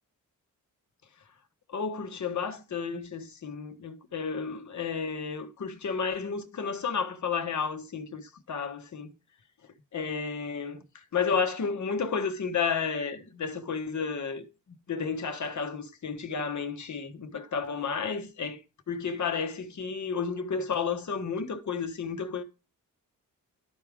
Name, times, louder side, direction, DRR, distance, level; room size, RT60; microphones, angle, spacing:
voice 1, 1.7-9.1 9.6-18.6 18.9-22.4, left 5 dB, 55° left, 1.3 m, -32 dB
12.0 x 4.9 x 3.5 m
cardioid pair, 80°, 34 cm